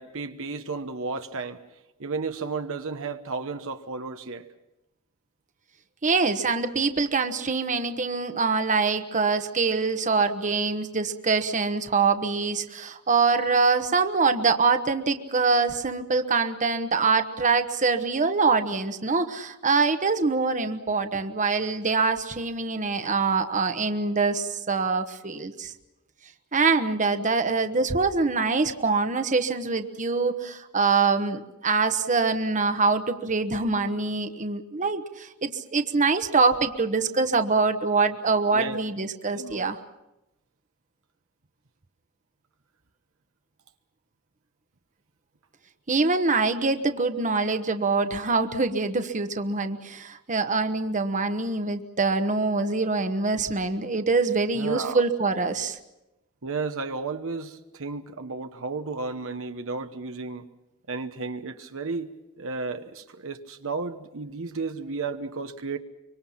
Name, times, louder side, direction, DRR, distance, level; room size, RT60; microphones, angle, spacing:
voice 1, 0.0-1.6 2.0-4.5 38.5-38.8 39.3-39.7 54.5-55.0 56.4-60.4 60.9-65.8, right 4 dB, 65° right, 1.1 m, -33 dB
voice 2, 6.0-25.7 26.5-39.8 45.9-55.8, right 4 dB, 35° right, 1.2 m, -24 dB
25.0 x 24.5 x 5.8 m
head